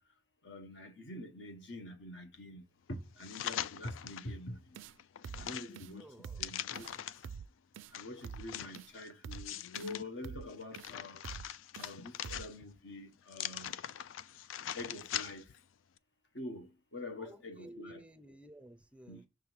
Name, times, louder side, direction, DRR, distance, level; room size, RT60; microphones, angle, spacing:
voice 1, 0.4-4.8 5.4-6.1 6.4-6.9 7.9-11.2 11.8-13.7 14.7-15.6 16.3-18.0 19.1-19.2, left 1 dB, 65° left, 1.2 m, -46 dB
sound 1, 3.2-4.3 4.8-7.3 7.9-10.0 10.5-12.8 13.3-15.6 16.0-16.1, left 11 dB, 90° left, 0.4 m, -42 dB
sound 2, 4.7-4.9 5.2-5.5 5.7-5.9 6.2-6.5 6.7-6.9 7.2-7.5 7.7-7.9 8.2-8.5 8.7-8.9 9.2-9.5 9.7-9.9 10.2-10.5 10.7-10.9 11.2-11.5 11.7-11.9 12.2-12.5, right 7 dB, 70° right, 0.3 m, -46 dB
voice 2, 6.0-6.5 17.2-19.3, right 1 dB, 5° right, 0.4 m, -53 dB
6.1 x 3.6 x 4.6 m
head